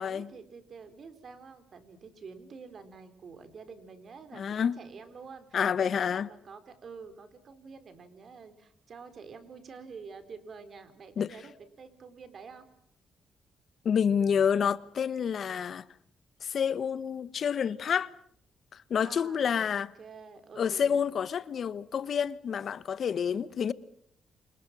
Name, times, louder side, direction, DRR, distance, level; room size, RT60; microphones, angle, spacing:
voice 1, 0.0-12.7 19.0-21.0 23.1-23.4, right 5 dB, 60° right, 4.3 m, -48 dB
voice 2, 4.3-4.8 5.5-6.3 11.2-11.3 13.8-15.9 16.4-18.1 18.9-19.9 20.6-23.7, left 7 dB, 65° left, 1.1 m, -28 dB
29.5 x 26.0 x 6.2 m
supercardioid pair, 50°, 0 cm